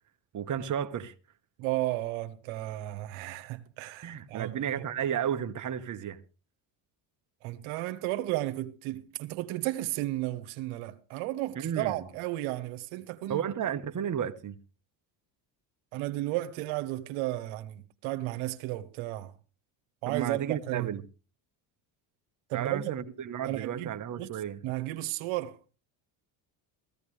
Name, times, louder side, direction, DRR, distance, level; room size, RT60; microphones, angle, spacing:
voice 1, 0.3-1.1 4.0-6.2 11.6-12.0 13.3-14.6 20.1-21.0 22.5-24.6, right 9 dB, 40° right, 1.2 m, -33 dB
voice 2, 1.6-4.5 4.8-4.9 7.4-13.4 15.9-19.3 20.0-20.9 22.5-22.9 23.4-24.3 24.6-25.8, right 17 dB, 90° right, 1.2 m, -33 dB
17.0 x 15.0 x 3.3 m
cardioid pair, 100°, 47 cm